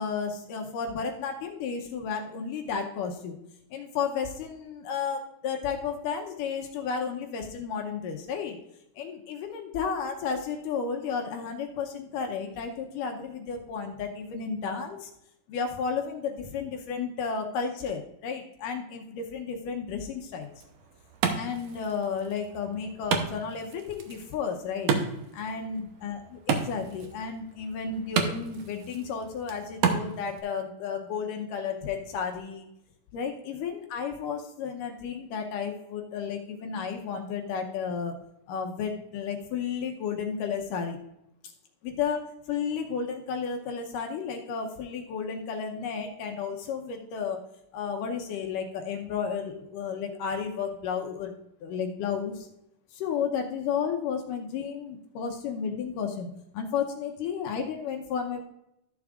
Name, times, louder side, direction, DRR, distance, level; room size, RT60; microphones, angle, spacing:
voice 1, 0.0-3.4 3.7-8.6 9.0-15.1 15.5-20.5 21.4-24.9 25.3-32.7 33.1-38.2 38.5-41.0 41.8-47.4 47.7-51.3 51.6-52.5 52.9-58.4, left 6 dB, 75° left, 3 dB, 2.2 m, -32 dB
Wood, 20.4-30.4, right 6 dB, 80° right, 1.4 m, -33 dB
14.0 x 7.0 x 2.4 m, 0.84 s
omnidirectional pair, 4.2 m